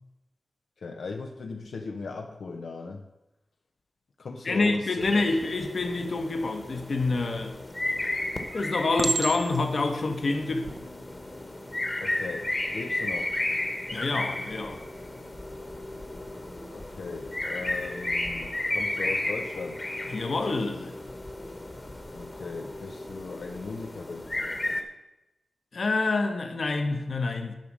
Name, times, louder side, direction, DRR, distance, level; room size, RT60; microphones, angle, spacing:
voice 1, 0.8-3.0 4.2-5.2 12.0-13.4 16.7-19.8 22.1-24.3, left 4 dB, 85° left, 3 dB, 0.8 m, -38 dB
voice 2, 4.4-7.6 8.5-10.7 13.9-14.8 20.1-20.9 25.7-27.6, left 3 dB, 60° left, 6 dB, 1.2 m, -27 dB
sound 1, 5.0-24.8, left 1 dB, 25° left, 1.2 m, -34 dB
Chink clink, 7.5-8.0 9.0-9.8 10.5-10.8, right 3 dB, 45° right, 0.7 m, -30 dB
10.5 x 5.1 x 7.4 m, 0.95 s
wide cardioid pair, 125°, 0 cm